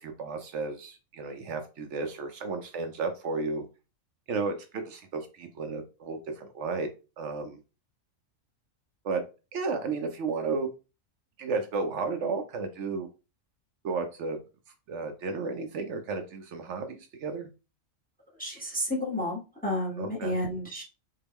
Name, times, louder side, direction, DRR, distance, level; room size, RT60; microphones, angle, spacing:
voice 1, 0.0-3.6 4.3-6.9 7.2-7.6 9.0-9.2 9.5-10.7 11.4-13.1 13.8-14.4 14.9-17.5 20.0-20.4, right 4 dB, 70° right, 5 dB, 0.8 m, -33 dB
voice 2, 18.4-20.8, left 1 dB, 10° left, -3 dB, 0.8 m, -31 dB
3.6 x 2.2 x 3.4 m, 0.31 s
omnidirectional pair, 1.3 m